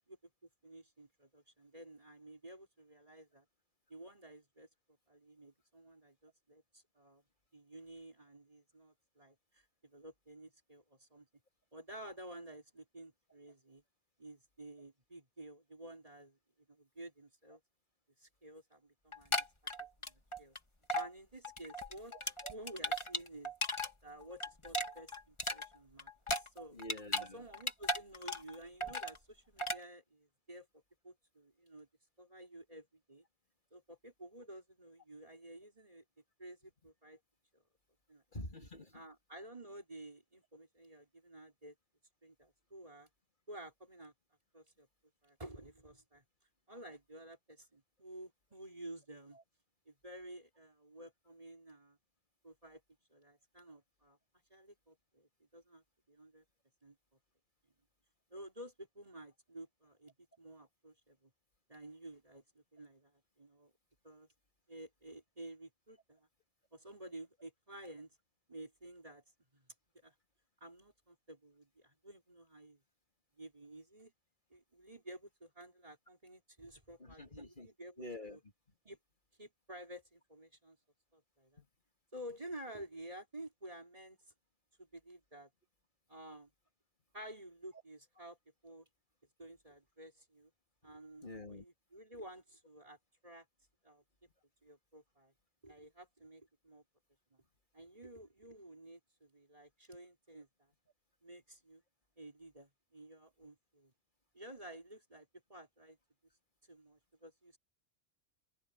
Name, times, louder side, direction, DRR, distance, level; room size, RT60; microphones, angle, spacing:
voice 1, 0.6-3.5 3.9-4.7 5.1-7.2 7.5-11.3 11.7-13.8 14.2-16.4 16.7-17.6 18.2-19.5 20.0-20.6 20.9-23.5 24.0-26.8 27.3-31.9 32.2-33.2 33.7-36.0 36.4-37.2 37.5-37.6 38.1-38.2 38.9-41.7 42.2-43.1 43.5-44.1 44.5-44.9 45.2-46.2 46.7-49.4 49.9-52.0 52.4-52.8 53.1-54.2 54.5-56.4 56.8-57.0 58.3-61.3 61.7-63.7 64.0-64.3 64.7-66.3 66.7-68.1 68.5-69.2 69.5-69.7 69.9-70.1 70.6-72.8 73.4-74.1 74.5-78.4 78.8-79.0 79.4-80.8 81.1-81.6 82.1-84.2 84.8-85.5 86.1-86.5 87.1-88.4 88.6-88.9 89.4-90.5 90.8-93.0 93.2-93.5 93.8-94.0 94.6-95.3 95.6-96.8 97.3-97.4 97.7-100.7 101.2-101.8 102.2-103.9 104.3-106.0 106.7-107.6, right 1 dB, 35° right, 4.1 m, -52 dB
sound 1, 19.1-20.6 20.9-21.1 21.4-23.9 24.2-27.3 27.5-28.5 28.8-29.2 29.6-29.8, left 1 dB, 30° left, 2.0 m, -37 dB
voice 2, 22.1-22.5 26.7-27.5 38.3-39.0 49.3-49.4 77.0-77.7 78.0-78.4 81.6-81.7 91.2-91.6, left 1 dB, 50° left, 3.3 m, -47 dB
open air
omnidirectional pair, 1.1 m